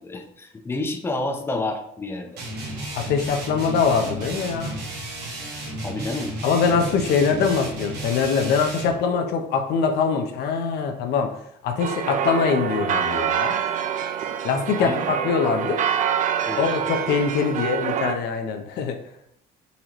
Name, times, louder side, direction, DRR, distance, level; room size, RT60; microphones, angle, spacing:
voice 1, 0.0-2.4 5.8-6.3 14.8-15.1 16.5-16.6, left 2 dB, 15° left, 4 dB, 0.5 m, -29 dB
sound 1, 2.4-9.0, right 1 dB, 80° right, 1.2 m, -33 dB
voice 2, 2.9-4.8 6.4-11.3 11.6-13.6 14.4-15.8 16.6-19.0, left 5 dB, 75° left, 5 dB, 0.5 m, -23 dB
sound 2, 11.8-18.1, right 8 dB, 50° right, 0.4 m, -26 dB
4.0 x 3.0 x 2.9 m, 0.73 s
cardioid pair, 110°, 17 cm